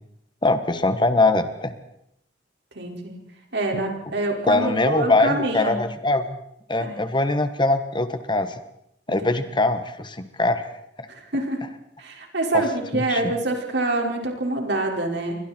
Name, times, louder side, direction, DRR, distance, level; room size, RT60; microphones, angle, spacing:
voice 1, 0.4-1.7 4.5-6.4 6.7-8.6 9.1-10.7 11.0-11.1 12.5-12.6 12.9-13.3, left 2 dB, 25° left, 10 dB, 1.5 m, -22 dB
voice 2, 2.7-3.2 3.5-5.8 6.8-7.0 9.1-9.4 11.1-11.7 12.0-15.4, right 2 dB, 65° right, 2 dB, 5.3 m, -26 dB
29.0 x 24.0 x 4.5 m, 0.75 s
head